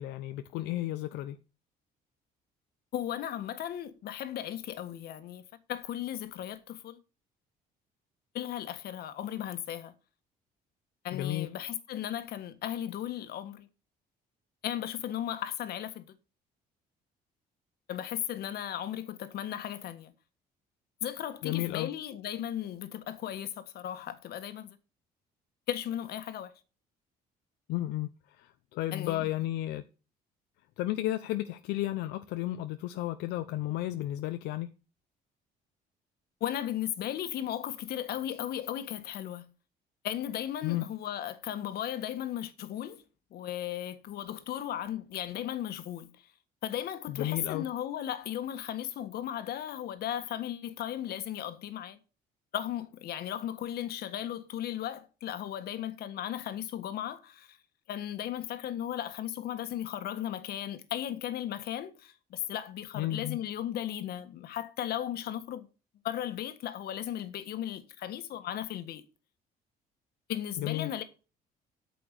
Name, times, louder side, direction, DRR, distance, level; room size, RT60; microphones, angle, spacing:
voice 1, 0.0-1.4 11.1-11.5 21.4-21.9 27.7-28.1 28.4-29.8 30.8-34.7 40.6-40.8 47.1-47.6 62.9-63.4 70.6-70.9, left 15 dB, 90° left, 0.7 m, -33 dB
voice 2, 2.9-5.4 5.7-7.0 8.3-9.9 11.0-13.7 14.6-16.2 17.9-20.1 21.0-24.8 25.7-26.5 28.9-29.3 36.4-39.5 40.0-43.0 43.3-46.1 46.6-52.0 52.5-57.6 57.9-65.7 66.0-69.0 70.3-71.0, left 11 dB, 70° left, 1.6 m, -36 dB
9.1 x 6.8 x 6.8 m
cardioid pair, 110°, 17 cm